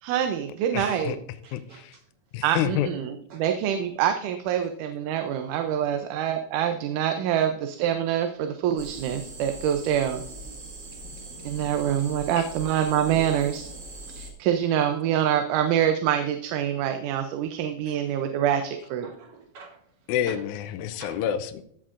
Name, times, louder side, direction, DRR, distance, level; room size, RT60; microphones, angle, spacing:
voice 1, 0.0-1.2 2.4-10.2 11.4-13.7 14.2-19.1, right 10 dB, 90° right, 6 dB, 2.1 m, -25 dB
voice 2, 0.7-1.2 1.5-1.9 2.3-2.9 12.4-12.5 20.1-21.6, left 10 dB, 80° left, 11 dB, 2.0 m, -28 dB
voice 3, 1.4-2.0 3.3-3.4 5.9-6.0 11.0-11.5 18.6-18.7 19.0-19.8 20.3-20.4 21.0-21.2, right 4 dB, 60° right, 3 dB, 1.9 m, -46 dB
sound 1, 8.8-14.3, right 2 dB, 40° right, 2.2 m, -41 dB
15.0 x 7.4 x 2.5 m, 0.67 s
omnidirectional pair, 3.5 m